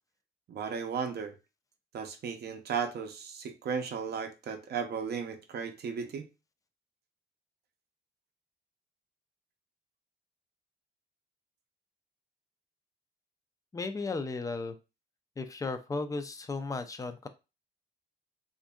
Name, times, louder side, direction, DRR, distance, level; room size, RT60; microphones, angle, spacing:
voice 1, 0.5-1.3 1.9-6.3, right 6 dB, 55° right, 0.5 m, -35 dB
voice 2, 13.7-14.8 15.4-17.3, left 3 dB, 15° left, 0.4 m, -35 dB
2.7 x 2.5 x 2.3 m
cardioid pair, 90°, 20 cm